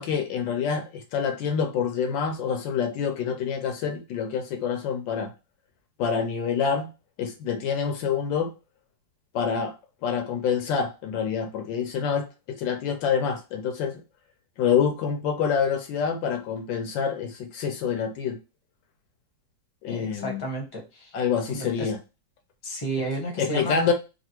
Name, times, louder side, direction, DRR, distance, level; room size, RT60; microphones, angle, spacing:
voice 1, 0.0-5.3 6.0-6.9 7.2-8.5 9.3-9.7 10.0-12.3 12.6-14.0 14.6-18.4 19.8-20.4 21.1-22.0 23.4-23.9, left 6 dB, 75° left, 1.3 m, -26 dB
voice 2, 19.9-21.1 21.5-21.9 22.6-23.9, right 1 dB, 20° left, 0.8 m, -32 dB
3.3 x 2.4 x 2.9 m
omnidirectional pair, 2.1 m